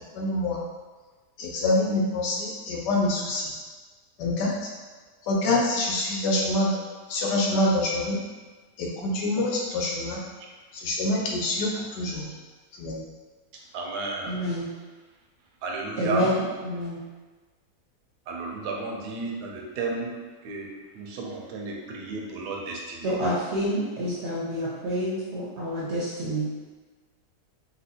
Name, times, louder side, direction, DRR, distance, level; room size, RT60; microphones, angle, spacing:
voice 1, 0.1-0.6 1.4-3.5 4.2-4.7 5.2-6.8 7.1-8.2 8.8-10.2 10.7-12.3 12.8-13.0, left 2 dB, 80° left, -3 dB, 1.3 m, -26 dB
voice 2, 13.5-14.5 15.6-16.3 18.3-20.2 20.4-20.7 20.9-23.1, right 3 dB, 75° right, 0 dB, 1.1 m, -33 dB
voice 3, 14.2-14.7 16.0-17.0 23.0-26.5, equal, 60° right, -7 dB, 0.7 m, -28 dB
4.3 x 2.3 x 2.7 m, 1.3 s
omnidirectional pair, 1.8 m